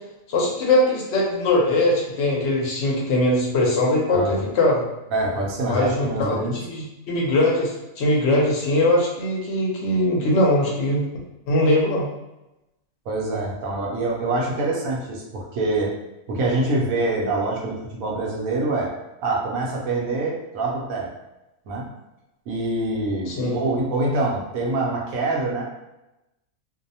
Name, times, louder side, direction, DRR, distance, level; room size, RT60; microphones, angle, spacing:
voice 1, 0.3-4.8 5.7-6.4 6.7-11.0 11.5-12.1 23.3-23.6, left 1 dB, 60° left, -2 dB, 0.9 m, -21 dB
voice 2, 4.1-4.4 5.1-6.5 13.1-15.9 16.3-18.9 19.2-21.1 21.7-21.9 22.5-25.6, right 2 dB, 80° right, -2 dB, 1.0 m, -25 dB
2.6 x 2.0 x 2.7 m, 0.95 s
omnidirectional pair, 1.4 m